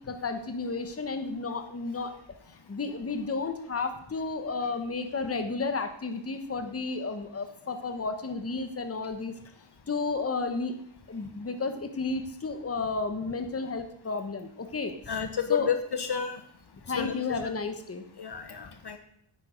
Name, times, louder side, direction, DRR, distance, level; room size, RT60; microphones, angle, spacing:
voice 1, 0.0-2.1 2.7-9.3 9.9-10.8 11.1-15.2 15.5-15.7 16.8-18.0, left 4 dB, 30° left, 8 dB, 1.0 m, -32 dB
voice 2, 15.1-16.4 17.0-17.1 18.2-19.0, left 7 dB, 55° left, 7 dB, 1.0 m, -30 dB
9.6 x 8.3 x 5.0 m, 0.68 s
wide cardioid pair, 110°, 49 cm